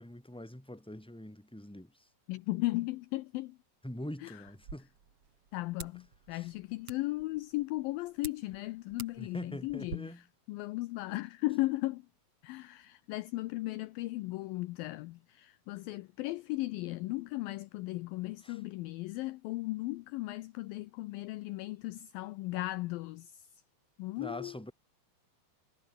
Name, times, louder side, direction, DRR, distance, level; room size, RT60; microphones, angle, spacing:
voice 1, 0.0-2.1 3.8-4.9 6.3-6.5 9.2-10.2 18.4-18.6 24.2-24.7, left 1 dB, ahead, 4.1 m, -44 dB
voice 2, 2.3-3.6 4.2-4.4 5.5-10.2 10.5-12.1 12.4-23.5 24.0-24.6, left 19 dB, 80° left, 2.1 m, -36 dB
sound 1, 4.5-10.0, right 6 dB, 40° right, 3.4 m, -50 dB
omnidirectional pair, 4.7 m